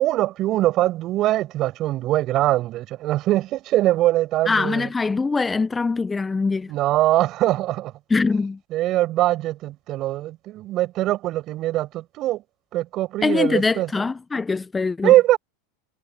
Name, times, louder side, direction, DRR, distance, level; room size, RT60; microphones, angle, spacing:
voice 1, 0.0-4.9 6.7-7.9 8.7-12.4 12.7-13.9 15.0-15.4, right 15 dB, 45° right, 5.6 m, -22 dB
voice 2, 4.5-6.7 8.1-8.6 13.2-15.1, left 4 dB, 15° left, 0.8 m, -23 dB
hypercardioid pair, 90°, 0 cm